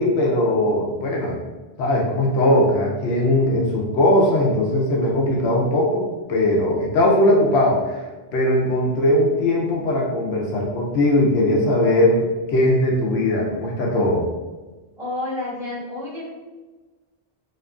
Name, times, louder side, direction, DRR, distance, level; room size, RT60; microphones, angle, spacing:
voice 1, 0.0-1.4 1.8-8.0 8.3-14.3, left 1 dB, 90° left, -2 dB, 0.9 m, -19 dB
voice 2, 15.0-16.2, left 2 dB, 5° right, -12 dB, 1.3 m, -29 dB
2.7 x 2.5 x 2.3 m, 1.3 s
omnidirectional pair, 1.1 m